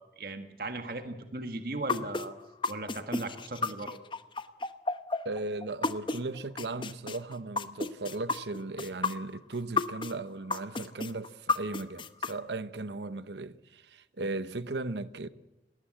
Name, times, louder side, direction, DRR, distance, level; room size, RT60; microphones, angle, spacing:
voice 1, 0.0-2.3 2.7-4.0, right 2 dB, 55° right, 1.6 m, -37 dB
sound 1, 1.9-6.2 6.6-10.1 10.5-12.3, left 4 dB, 30° left, 0.8 m, -31 dB
voice 2, 5.2-15.3, right 2 dB, 80° right, 0.9 m, -37 dB
20.5 x 18.5 x 7.7 m
head